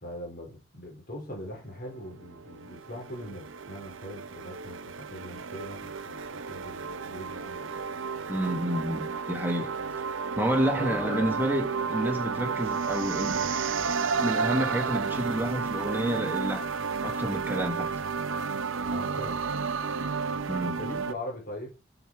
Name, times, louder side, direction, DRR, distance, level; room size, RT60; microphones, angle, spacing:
voice 1, 0.0-7.8 10.8-11.4 18.8-19.4 20.6-21.7, left 1 dB, 45° left, 3.9 m, -41 dB
sound 1, 1.8-21.1, right 5 dB, 70° right, 0.6 m, -32 dB
voice 2, 8.3-9.7 10.4-13.3 14.2-16.6 17.0-17.9 20.5-20.8, right 1 dB, 10° right, 1.3 m, -29 dB
7.0 x 6.2 x 4.4 m
head